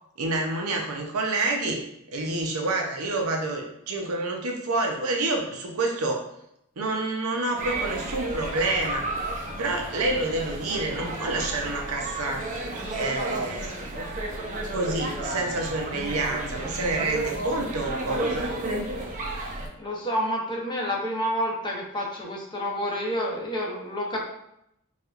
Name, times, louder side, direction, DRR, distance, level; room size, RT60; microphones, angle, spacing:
voice 1, 0.2-1.8 2.1-6.2 6.8-9.1 9.6-12.4 12.9-13.7 14.7-18.5, right 2 dB, 80° right, 1 dB, 0.6 m, -28 dB
sound 1, 7.6-19.7, right 1 dB, 35° right, 0.5 m, -32 dB
voice 2, 19.8-24.2, equal, 20° left, -2 dB, 0.7 m, -29 dB
4.3 x 2.4 x 2.4 m, 0.78 s
head